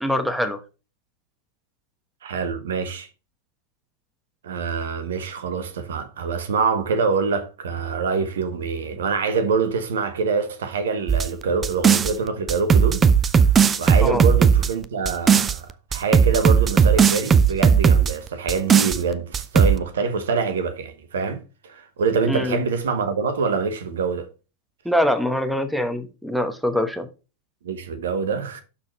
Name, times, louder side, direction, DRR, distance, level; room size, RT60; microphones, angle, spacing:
voice 1, 0.0-0.6 14.0-14.2 22.3-22.6 24.8-27.1, left 1 dB, ahead, 1.0 m, -23 dB
voice 2, 2.2-3.1 4.4-13.5 13.8-24.3 27.6-28.6, right 5 dB, 60° right, 1.0 m, -25 dB
sound 1, 11.1-12.1 12.5-15.6 15.9-18.1 18.5-19.0 19.3-19.8, right 7 dB, 20° right, 0.5 m, -16 dB
12.0 x 4.1 x 3.1 m
figure-of-eight pair, 90°, 0 cm